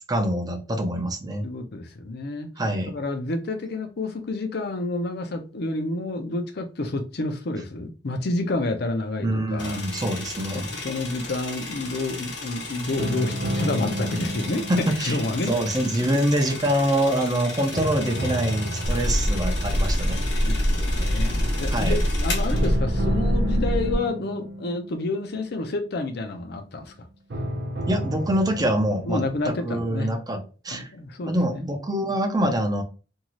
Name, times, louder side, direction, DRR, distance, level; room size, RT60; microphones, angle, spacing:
voice 1, 0.1-1.4 2.6-2.9 9.2-10.7 14.7-15.2 15.5-20.2 21.7-22.0 27.9-30.9 31.3-32.8, right 1 dB, 20° right, 0.5 m, -25 dB
voice 2, 1.4-2.5 2.9-9.8 10.5-14.7 15.0-15.5 16.1-16.2 20.4-26.9 29.0-30.1 30.7-31.7, left 2 dB, 60° left, 0.6 m, -29 dB
sound 1, 9.6-22.8, left 3 dB, 80° left, 1.2 m, -36 dB
sound 2, 13.0-17.3 17.7-21.0 22.5-26.5 27.3-29.5, equal, 80° right, 0.7 m, -32 dB
sound 3, 18.8-24.0, equal, 50° right, 0.9 m, -24 dB
2.7 x 2.4 x 3.0 m
head